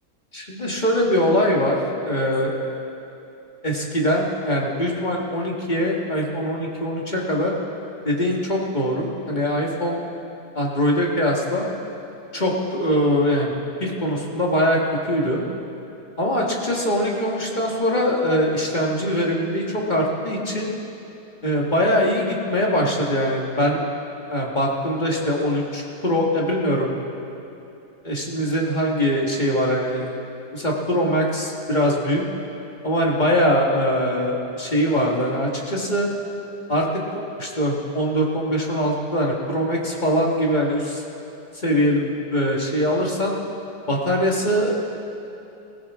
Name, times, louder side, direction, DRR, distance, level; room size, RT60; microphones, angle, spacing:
voice 1, 0.3-2.7 3.6-7.5 8.0-10.0 10.5-11.7 12.3-13.5 13.8-14.8 15.0-15.4 16.2-20.7 21.4-23.8 24.3-26.9 28.0-30.1 30.5-32.2 32.8-36.1 36.7-36.9 37.4-41.0 41.5-43.3 43.9-45.0, equal, 30° left, -2 dB, 1.7 m, -22 dB
20.0 x 16.0 x 3.6 m, 2.9 s
omnidirectional pair, 1.8 m